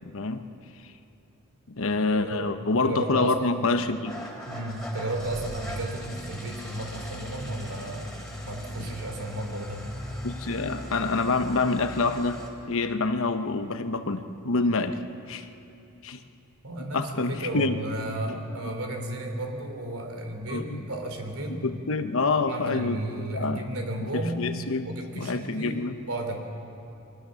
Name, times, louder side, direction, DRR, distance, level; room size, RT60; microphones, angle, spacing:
voice 1, 0.0-0.5 1.7-4.2 8.8-8.9 10.2-12.4 12.7-15.0 15.3-15.5 16.0-16.2 16.9-17.8 18.3-18.4 20.5-20.9 21.6-23.0 23.3-23.6 24.0-24.9 25.2-26.0, left 3 dB, 65° left, 8 dB, 1.0 m, -27 dB
voice 2, 2.8-3.7 4.5-9.9 16.6-21.7 22.4-24.5 24.8-25.8 26.1-26.4, right 1 dB, 70° right, 3 dB, 3.4 m, -33 dB
Engine starting / Idling, 4.0-12.5, equal, 5° left, 3.4 m, -39 dB
24.0 x 19.5 x 6.4 m, 2.8 s
head